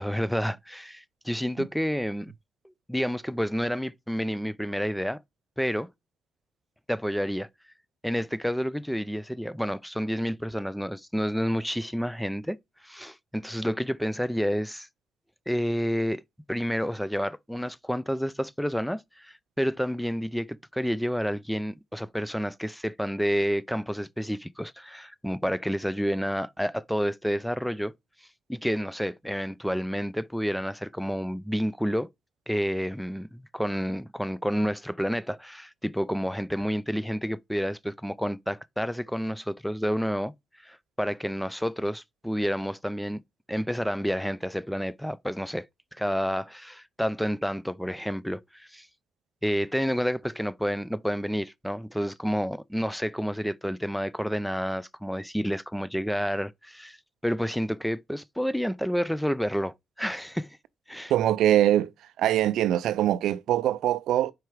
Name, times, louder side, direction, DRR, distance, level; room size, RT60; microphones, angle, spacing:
voice 1, 0.0-2.3 2.9-5.2 5.6-5.9 6.9-7.5 8.0-12.6 12.8-14.9 15.5-16.2 16.5-27.9 28.5-32.1 32.5-40.3 40.6-43.2 43.5-45.7 45.9-48.9 49.4-57.0 57.2-60.6 60.9-61.1, equal, ahead, 0.4 m, -29 dB
voice 2, 61.1-61.9 62.2-64.3, right 12 dB, 80° right, 0.4 m, -23 dB
4.7 x 4.7 x 4.6 m
cardioid pair, 90°, 0 cm